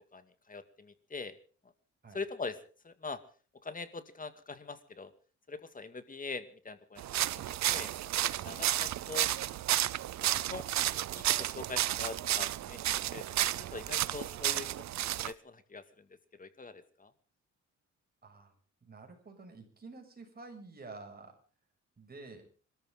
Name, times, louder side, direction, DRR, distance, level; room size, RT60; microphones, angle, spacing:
voice 1, 0.0-1.4 2.1-2.6 2.8-3.2 3.6-5.1 5.5-9.3 10.2-10.7 11.1-14.7 15.0-16.1 16.3-17.1, left 4 dB, 25° left, 10 dB, 2.2 m, -43 dB
sound 1, 7.0-15.3, right 13 dB, 65° right, 0.7 m, -32 dB
voice 2, 18.2-18.5 18.8-21.3 22.0-22.5, right 3 dB, 30° right, 3 dB, 6.9 m, -50 dB
26.5 x 14.0 x 3.9 m, 0.40 s
cardioid pair, 90°, 30 cm